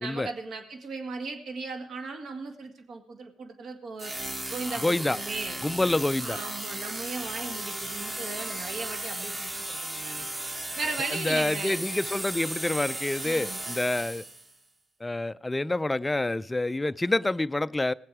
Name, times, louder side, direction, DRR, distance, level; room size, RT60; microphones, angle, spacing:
voice 1, 0.0-4.1 4.5-5.6 6.2-10.2 10.8-11.8 13.2-13.6, right 3 dB, 60° right, 5 dB, 1.9 m, -37 dB
sound 1, 4.0-14.5, right 1 dB, 25° right, 1.4 m, -35 dB
voice 2, 4.8-5.2 5.6-6.4 11.1-14.2 15.0-17.9, left 2 dB, 15° left, 15 dB, 0.4 m, -27 dB
18.5 x 7.7 x 4.8 m, 0.72 s
cardioid pair, 90°, 0 cm